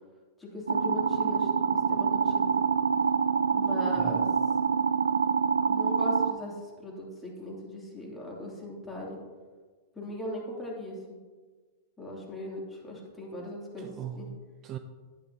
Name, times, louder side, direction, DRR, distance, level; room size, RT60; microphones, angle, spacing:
voice 1, 0.4-2.5 3.5-4.2 5.7-9.2 9.9-11.0 12.0-13.9 14.2-14.3, left 1 dB, 10° left, -4 dB, 2.9 m, -39 dB
sound 1, 0.7-6.3, right 6 dB, 90° right, 0.4 m, -26 dB
voice 2, 3.9-4.3 13.8-14.8, right 9 dB, 35° right, 8 dB, 0.5 m, -40 dB
11.0 x 9.1 x 2.9 m, 1.4 s
hypercardioid pair, 105°, 0 cm